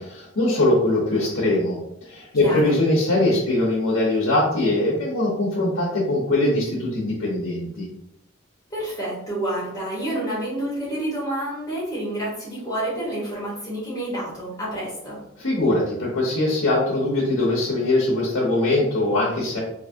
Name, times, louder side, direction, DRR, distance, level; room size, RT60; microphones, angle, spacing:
voice 1, 0.0-7.9 15.4-19.6, left 2 dB, 70° left, -4 dB, 0.9 m, -22 dB
voice 2, 2.4-2.7 8.7-15.2, right 1 dB, 15° left, -8 dB, 1.5 m, -29 dB
3.5 x 2.8 x 2.7 m, 0.80 s
head